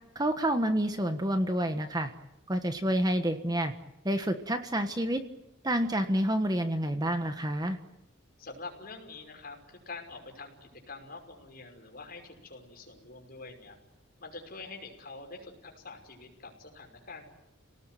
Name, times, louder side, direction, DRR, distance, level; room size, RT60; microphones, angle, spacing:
voice 1, 0.1-2.1 2.5-3.7 4.0-5.2 5.6-7.8, right 1 dB, 20° right, 7 dB, 1.4 m, -28 dB
voice 2, 8.4-13.8 14.2-17.3, left 3 dB, 45° left, 2 dB, 5.8 m, -46 dB
29.0 x 18.5 x 9.3 m, 0.88 s
head